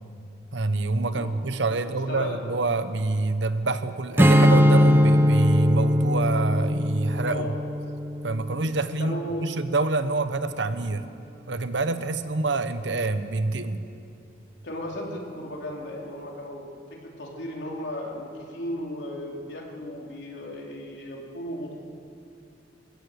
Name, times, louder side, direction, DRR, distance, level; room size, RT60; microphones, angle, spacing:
voice 1, 0.5-7.5 8.2-11.0 11.5-13.8, right 3 dB, 80° right, 11 dB, 1.0 m, -26 dB
voice 2, 1.7-2.4 7.2-7.5 9.0-9.5 14.6-21.8, equal, 70° left, -1 dB, 3.6 m, -35 dB
Strum, 4.2-9.5, equal, 10° right, 0.8 m, -21 dB
26.5 x 16.5 x 6.7 m, 2.6 s
head